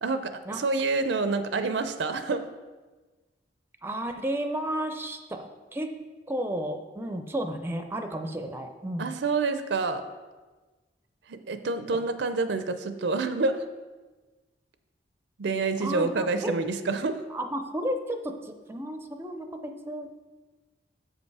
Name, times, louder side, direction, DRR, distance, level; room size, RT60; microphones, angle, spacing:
voice 1, 0.0-2.5 9.0-10.0 11.3-13.6 15.4-17.2, right 3 dB, 75° right, 10 dB, 0.5 m, -28 dB
voice 2, 3.8-5.9 6.3-9.1 15.8-16.5 17.3-20.1, right 1 dB, 15° right, 6 dB, 0.5 m, -32 dB
7.3 x 5.3 x 4.7 m, 1.3 s
head